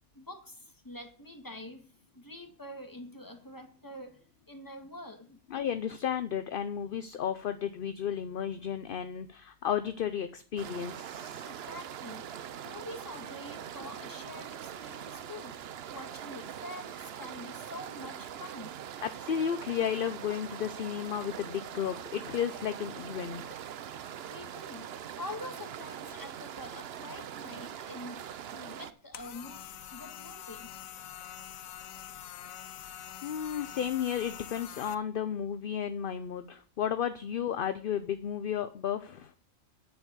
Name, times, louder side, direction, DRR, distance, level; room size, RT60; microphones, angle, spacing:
voice 1, 0.1-1.9 2.1-5.4 11.4-12.3 12.6-18.8 24.3-29.6 29.9-30.7, left 1 dB, 15° left, 4 dB, 1.9 m, -46 dB
voice 2, 5.5-11.5 19.0-23.4 33.2-39.3, left 9 dB, 55° left, 11 dB, 0.7 m, -33 dB
sound 1, 10.6-28.9, right 9 dB, 60° right, 0.8 m, -42 dB
sound 2, 29.1-34.9, left 10 dB, 85° left, 1.2 m, -45 dB
9.9 x 5.3 x 8.3 m, 0.42 s
omnidirectional pair, 1.4 m